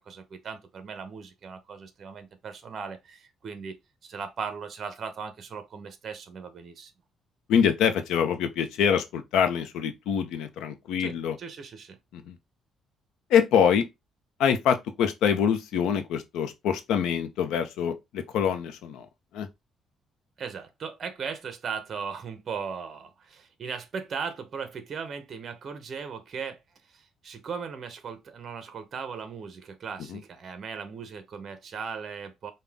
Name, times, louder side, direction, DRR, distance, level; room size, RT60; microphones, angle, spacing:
voice 1, 0.0-3.8 4.0-6.9 11.0-12.0 20.4-26.6 26.9-32.5, right 6 dB, 40° right, 0.8 m, -38 dB
voice 2, 7.5-11.3 12.1-12.4 13.3-13.9 14.4-19.1 19.3-19.5 30.1-30.2, left 8 dB, 85° left, 0.7 m, -25 dB
5.4 x 2.3 x 3.5 m
cardioid pair, 135°, 0 cm